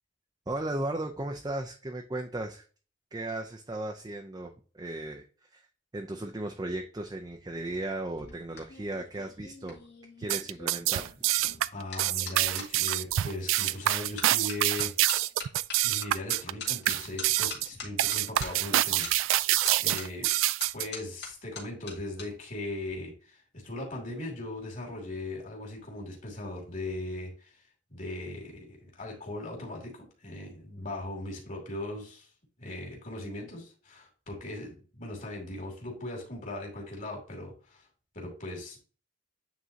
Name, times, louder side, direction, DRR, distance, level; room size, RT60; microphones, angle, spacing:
voice 1, 0.5-2.7 3.1-5.7 5.9-9.8 10.2-11.1, right 2 dB, 20° right, 3 dB, 0.5 m, -36 dB
sound 1, 8.0-13.0 13.6-13.9 14.2-22.3 22.5-22.9, left 4 dB, 55° left, 2.1 m, -43 dB
sound 2, 10.2-20.9, right 14 dB, 80° right, 0.3 m, -26 dB
voice 2, 11.7-14.9 15.8-20.3 20.7-27.5 27.9-32.3 32.6-37.8 38.1-38.8, left 2 dB, 40° left, 0 dB, 2.6 m, -39 dB
9.2 x 3.8 x 2.7 m, 0.38 s
head